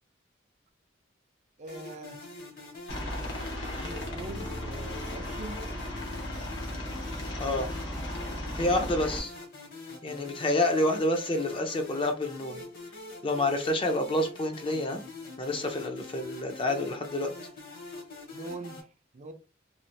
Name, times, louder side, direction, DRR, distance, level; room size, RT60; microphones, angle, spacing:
voice 1, 1.6-2.2 3.7-5.6 18.3-18.8 19.1-19.3, right 2 dB, 35° right, 0.4 m, -42 dB
sound 1, 1.7-18.8, left 3 dB, 50° left, 1.0 m, -45 dB
Aircraft, 2.9-9.2, left 1 dB, 70° left, 1.0 m, -36 dB
voice 2, 7.4-7.7 8.6-9.3 10.0-12.6 13.2-15.0 15.4-17.3, left 1 dB, 30° left, 0.5 m, -28 dB
3.1 x 2.4 x 2.7 m
head